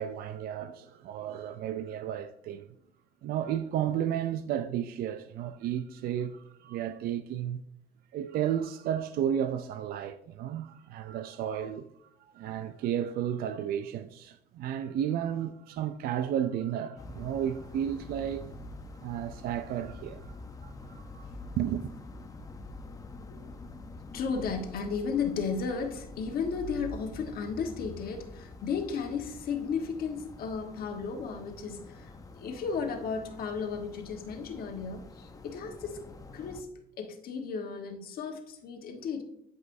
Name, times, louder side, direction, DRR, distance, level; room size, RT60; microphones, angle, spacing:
voice 1, 0.0-2.7 3.2-7.6 8.1-18.4 19.0-21.3 21.6-21.9, right 10 dB, 65° right, 0.4 m, -33 dB
sound 1, 17.0-36.6, left 2 dB, 20° left, 0.6 m, -46 dB
voice 2, 24.1-36.0 36.3-36.7 37.0-39.2, left 5 dB, 60° left, 1.3 m, -34 dB
11.5 x 5.3 x 2.6 m
cardioid pair, 110°, 17 cm